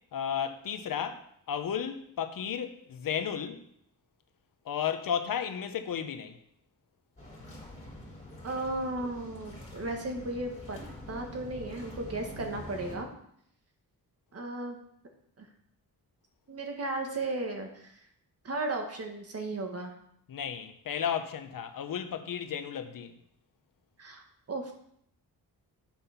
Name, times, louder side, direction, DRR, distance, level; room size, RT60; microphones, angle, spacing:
voice 1, 0.1-3.6 4.6-6.4 20.3-23.2, left 8 dB, 65° left, 8 dB, 0.9 m, -33 dB
sound 1, 7.2-13.0, left 1 dB, 20° left, 3.6 m, -45 dB
voice 2, 8.4-10.8 11.1-13.1 14.3-14.8 15.4-15.5 16.5-17.9 18.4-19.9 24.0-24.7, right 2 dB, 40° right, 3 dB, 1.5 m, -35 dB
8.7 x 5.6 x 5.7 m, 0.70 s
wide cardioid pair, 150°, 36 cm